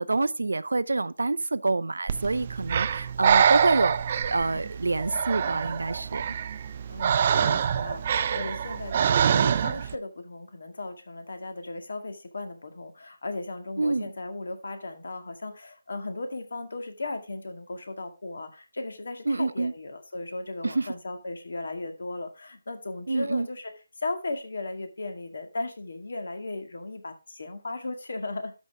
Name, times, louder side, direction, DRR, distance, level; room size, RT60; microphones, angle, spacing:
voice 1, 0.0-4.0 4.3-6.2 13.8-14.1 19.3-19.7 20.6-20.9 23.1-23.5, right 3 dB, 90° right, 0.6 m, -27 dB
Breathing, 2.1-10.0, right 8 dB, 25° right, 0.4 m, -25 dB
voice 2, 6.9-23.7 24.0-28.5, left 2 dB, 65° left, 2.1 m, -36 dB
12.5 x 5.4 x 3.6 m
hypercardioid pair, 175°, 0 cm